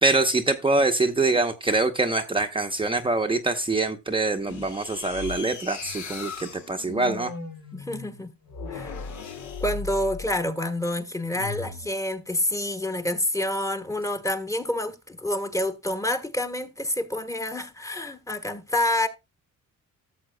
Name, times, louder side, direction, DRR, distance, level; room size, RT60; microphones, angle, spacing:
voice 1, 0.0-7.3, right 3 dB, 15° right, 0.8 m, -24 dB
sound 1, 4.5-10.4 11.3-11.9, left 5 dB, 75° left, 2.0 m, -37 dB
voice 2, 7.7-8.3 8.7-9.0 9.6-19.1, left 1 dB, 10° left, 1.2 m, -28 dB
14.0 x 7.3 x 2.2 m
cardioid pair, 90°, 30 cm